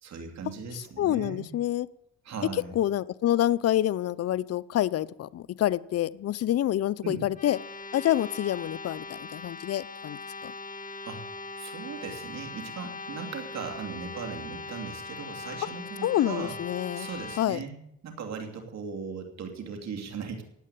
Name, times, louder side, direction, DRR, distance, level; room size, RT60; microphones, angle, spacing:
voice 1, 0.0-1.5 2.2-2.7 7.0-7.2 11.1-11.2 11.6-16.6 16.9-17.8 18.0-20.4, right 5 dB, 60° right, 3 dB, 3.0 m, -38 dB
voice 2, 0.7-1.9 2.8-7.6 7.9-10.5 16.0-17.1 17.4-17.6, left 12 dB, 55° left, 18 dB, 0.6 m, -27 dB
sound 1, 7.3-17.5, left 3 dB, 25° left, 1.6 m, -40 dB
17.5 x 8.6 x 8.4 m, 0.78 s
cardioid pair, 90°, 30 cm